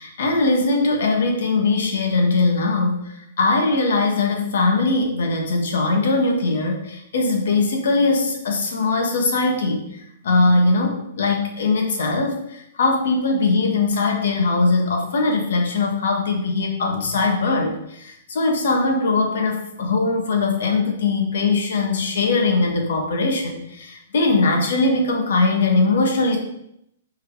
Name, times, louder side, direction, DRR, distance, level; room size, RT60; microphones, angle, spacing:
voice 1, 0.0-26.4, left 3 dB, 70° left, 2 dB, 1.6 m, -21 dB
5.0 x 4.7 x 4.7 m, 0.78 s
hypercardioid pair, 135°, 0 cm